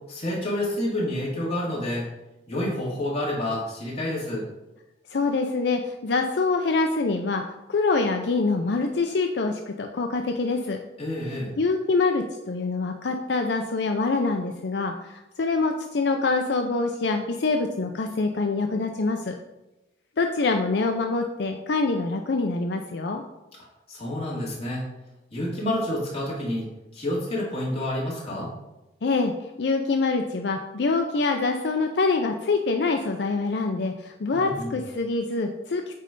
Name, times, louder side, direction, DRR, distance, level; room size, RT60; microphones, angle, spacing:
voice 1, 0.1-2.0 2.5-4.4 11.0-11.5 23.9-24.8 25.3-26.6 26.9-28.5 34.3-34.7, left 1 dB, 35° left, -6 dB, 2.6 m, -28 dB
voice 2, 5.1-7.4 7.7-10.8 11.6-19.3 20.2-23.2 29.0-29.3 29.6-35.9, left 3 dB, 65° left, 4 dB, 0.5 m, -25 dB
8.9 x 3.3 x 5.2 m, 0.99 s
head